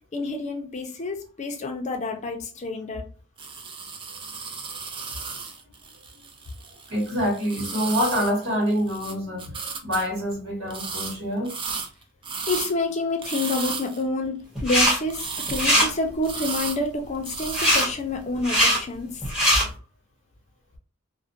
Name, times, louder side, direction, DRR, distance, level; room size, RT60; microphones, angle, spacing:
voice 1, 0.1-3.1 12.5-19.2, left 2 dB, 35° left, 0.5 m, -28 dB
sound 1, 3.4-9.1 9.4-10.1 10.7-11.2 11.5-12.7 13.2-14.0 15.1-15.8 16.2-16.9 17.2-17.8, right 5 dB, 25° right, 0.3 m, -34 dB
voice 2, 6.9-11.5, equal, 65° right, 1.3 m, -26 dB
sound 2, 14.5-15.0 15.2-15.9 17.5-17.9 18.3-18.8 19.2-19.6, equal, 5° right, 1.0 m, -20 dB
2.4 x 2.1 x 2.6 m
head